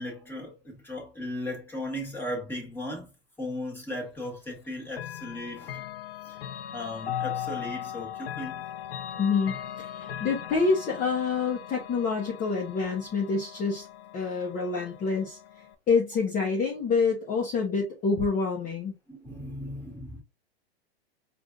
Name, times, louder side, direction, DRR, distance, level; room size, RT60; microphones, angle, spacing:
voice 1, 0.0-3.1 3.4-5.8 6.2-8.6 19.1-20.2, left 1 dB, 5° left, 1.6 m, -37 dB
Chime / Clock, 4.9-15.8, left 10 dB, 65° left, 0.7 m, -39 dB
voice 2, 9.2-13.8 14.1-15.4 15.9-18.9, left 4 dB, 25° left, 1.0 m, -27 dB
4.7 x 2.6 x 2.5 m
hypercardioid pair, 115°, 32 cm